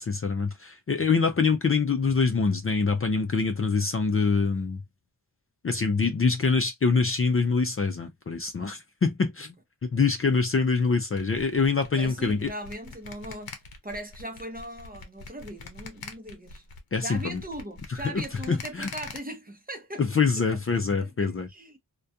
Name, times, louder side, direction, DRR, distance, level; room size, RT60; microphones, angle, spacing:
voice 1, 0.0-4.8 5.6-9.6 9.8-12.5 16.9-17.4 18.1-18.2 18.5-18.9 20.0-21.5, left 4 dB, 35° left, 0.5 m, -25 dB
sound 1, 11.2-19.2, left 4 dB, 70° left, 0.7 m, -43 dB
voice 2, 11.9-13.6 13.8-16.6 17.0-20.0 20.5-20.6 21.0-21.8, right 1 dB, 25° right, 0.7 m, -39 dB
2.3 x 2.2 x 2.6 m
wide cardioid pair, 90°, 38 cm